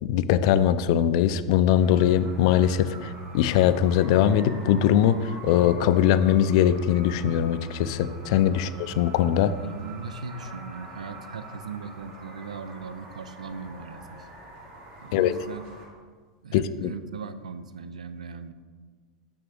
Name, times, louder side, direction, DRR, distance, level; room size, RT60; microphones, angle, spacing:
voice 1, 0.0-9.5 15.1-15.4 16.5-16.9, left 10 dB, 60° left, 14 dB, 0.3 m, -21 dB
sound 1, 1.7-15.9, right 2 dB, 45° right, 1.8 m, -45 dB
voice 2, 9.6-14.3 15.0-15.6 16.4-18.5, right 5 dB, 90° right, 12 dB, 0.4 m, -39 dB
6.2 x 6.1 x 3.4 m, 1.5 s
hypercardioid pair, 95°, 4 cm